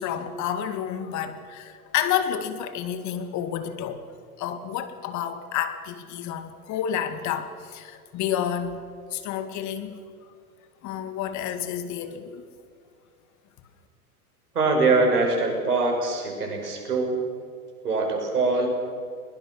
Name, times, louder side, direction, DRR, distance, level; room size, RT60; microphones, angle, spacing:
voice 1, 0.0-4.0 4.4-8.8 9.1-10.0 10.8-12.4, left 9 dB, 40° left, 9 dB, 2.2 m, -30 dB
voice 2, 14.5-17.2 17.8-18.7, right 3 dB, 85° right, 2 dB, 6.2 m, -23 dB
22.5 x 21.5 x 6.3 m, 2.1 s
hypercardioid pair, 105°, 45 cm